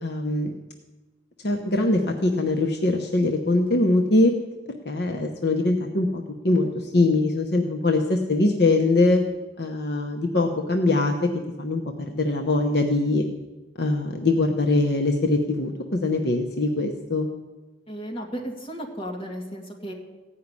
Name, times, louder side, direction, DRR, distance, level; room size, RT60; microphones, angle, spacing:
voice 1, 0.0-0.5 1.4-4.3 4.9-9.2 9.6-11.3 11.6-11.8 12.1-13.2 13.8-17.3, left 2 dB, 60° left, 2 dB, 1.0 m, -22 dB
voice 2, 17.9-19.9, equal, 30° left, 0 dB, 2.4 m, -34 dB
15.5 x 5.7 x 9.7 m, 1.2 s
head